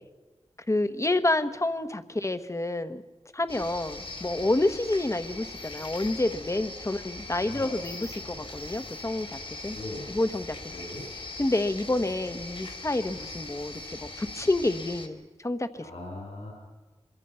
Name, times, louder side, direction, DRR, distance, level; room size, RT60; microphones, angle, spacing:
voice 1, 0.7-3.0 3.3-9.4 9.6-9.8 10.1-10.6 11.4-13.8 14.2-15.7, left 2 dB, 25° left, 10 dB, 1.2 m, -28 dB
sound 1, 3.5-15.1, left 2 dB, 55° left, 2.6 m, -41 dB
voice 2, 7.4-7.7 8.3-8.5 9.7-10.1 10.7-11.0 15.8-16.5, left 2 dB, 70° left, -1 dB, 5.0 m, -40 dB
24.5 x 23.0 x 5.7 m, 1.3 s
wide cardioid pair, 80°, 11 cm